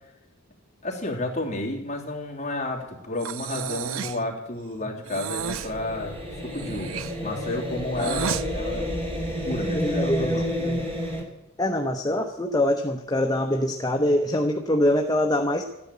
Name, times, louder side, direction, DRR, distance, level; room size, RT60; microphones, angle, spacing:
voice 1, 0.8-8.9 9.4-10.5, left 2 dB, 35° left, -2 dB, 3.0 m, -31 dB
Breathing, 3.2-4.3 5.0-5.7 6.5-8.5, right 7 dB, 70° right, 0.5 m, -32 dB
sound 1, 5.4-11.2, equal, 25° right, 3.0 m, -30 dB
voice 2, 9.7-10.9 11.6-15.6, left 1 dB, 15° left, 3 dB, 0.9 m, -24 dB
13.5 x 10.5 x 8.3 m, 0.87 s
head